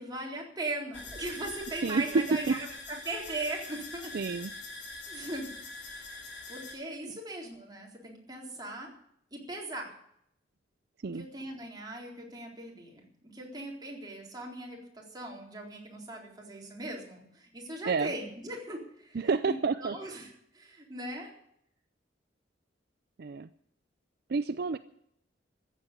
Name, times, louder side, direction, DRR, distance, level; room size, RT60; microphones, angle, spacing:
voice 1, 0.0-4.1 5.1-5.5 5.9-6.1 6.5-8.9 9.3-9.9 11.1-21.3, right 2 dB, 20° right, -1 dB, 3.8 m, -39 dB
sound 1, 0.9-6.8, left 3 dB, 75° left, 5.2 m, -44 dB
voice 2, 1.8-2.6 4.1-4.5 7.0-7.1 11.0-11.3 17.9-18.1 19.1-20.0 23.2-23.5 24.3-24.8, right 4 dB, 60° right, 12 dB, 0.5 m, -29 dB
14.5 x 8.3 x 9.6 m, 0.72 s
head